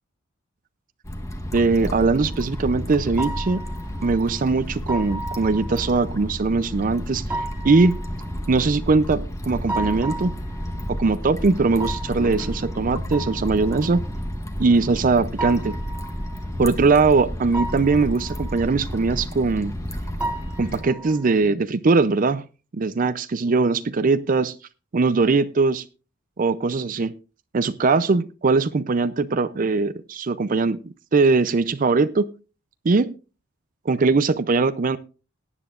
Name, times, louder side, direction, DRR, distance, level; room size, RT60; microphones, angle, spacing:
sound 1, 1.0-20.8, equal, 15° left, 1.2 m, -31 dB
voice 1, 1.5-3.6 4.0-8.0 8.5-10.3 10.9-14.0 14.6-15.8 16.6-19.7 20.6-22.4 22.7-24.5 24.9-25.8 26.4-27.1 27.5-30.8 31.1-32.3 32.8-33.1 33.9-35.0, right 3 dB, 40° right, 13 dB, 0.5 m, -21 dB
sound 2, 2.3-21.4, right 2 dB, 5° right, 2.0 m, -36 dB
18.0 x 10.0 x 2.4 m, 0.32 s
head